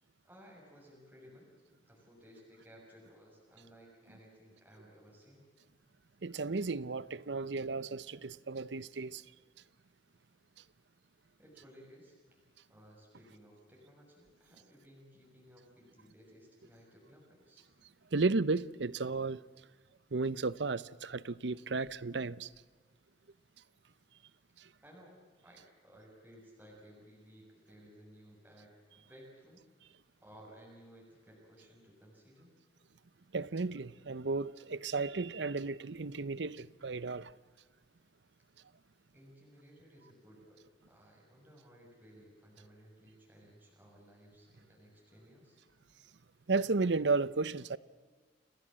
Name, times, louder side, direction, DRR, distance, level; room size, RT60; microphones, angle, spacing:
voice 1, 0.2-1.5 1.8-5.5 11.4-12.1 12.7-17.7 24.8-29.6 30.2-32.5 39.1-45.6, equal, 10° right, 6.5 m, -58 dB
voice 2, 6.2-9.2 18.1-19.4 20.1-22.5 24.6-24.7 33.3-37.3 46.5-47.8, right 3 dB, 75° right, 0.8 m, -34 dB
29.5 x 19.0 x 7.6 m
head